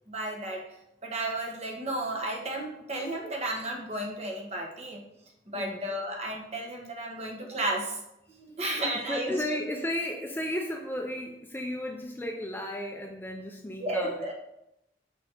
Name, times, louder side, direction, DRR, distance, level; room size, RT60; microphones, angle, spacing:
voice 1, 0.1-0.6 1.0-5.0 5.5-8.0 8.3-9.4 13.8-14.3, right 1 dB, 35° right, 1 dB, 1.2 m, -33 dB
voice 2, 5.5-5.9 9.1-14.2, left 1 dB, 10° left, 2 dB, 0.5 m, -34 dB
6.2 x 4.1 x 4.5 m, 0.84 s
head